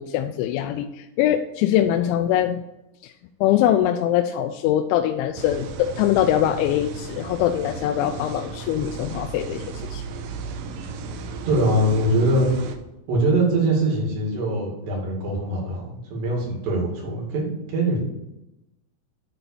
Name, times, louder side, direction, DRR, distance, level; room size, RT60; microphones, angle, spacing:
voice 1, 0.0-2.6 3.0-3.1 3.4-10.0, left 11 dB, 90° left, 5 dB, 3.0 m, -22 dB
sound 1, 5.4-12.8, right 4 dB, 85° right, 3.0 m, -35 dB
voice 2, 11.5-12.5 13.1-18.0, right 1 dB, 65° right, -3 dB, 4.4 m, -22 dB
10.5 x 4.0 x 6.9 m, 0.92 s
omnidirectional pair, 5.3 m